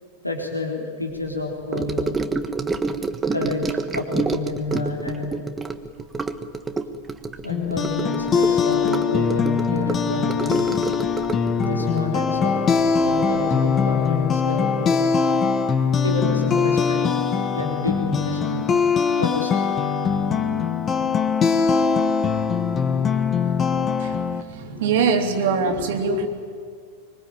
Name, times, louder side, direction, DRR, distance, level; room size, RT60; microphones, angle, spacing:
voice 1, 0.2-2.2 3.3-5.4 7.4-10.8 11.6-12.6 13.0-15.1 16.0-17.0 17.5-18.8 19.2-19.6, left 2 dB, 85° left, 0 dB, 3.9 m, -29 dB
Gurgling / Sink (filling or washing) / Trickle dribble, 1.7-13.4 13.6-14.0 14.2-14.3, right 4 dB, 15° right, 1.4 m, -28 dB
sound 1, 7.5-24.4, left 6 dB, 25° left, 1.8 m, -22 dB
voice 2, 24.0-26.3, right 5 dB, 55° right, 6 dB, 3.0 m, -23 dB
25.0 x 24.0 x 9.0 m, 2.2 s
figure-of-eight pair, 90°, 0 cm